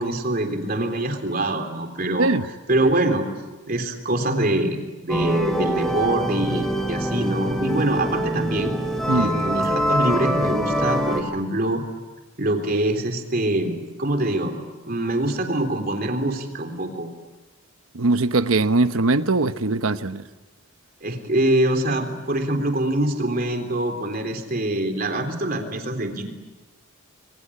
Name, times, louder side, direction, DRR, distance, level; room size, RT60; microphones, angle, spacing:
voice 1, 0.0-2.3 2.7-3.3 3.7-4.8 5.0-8.7 9.2-11.8 12.4-14.6 14.9-17.1 21.0-26.3, right 1 dB, 45° right, 3.6 m, -24 dB
sound 1, 5.1-11.2, equal, ahead, 2.8 m, -24 dB
voice 2, 17.9-20.2, right 3 dB, 80° right, 1.0 m, -21 dB
26.5 x 23.5 x 8.6 m
head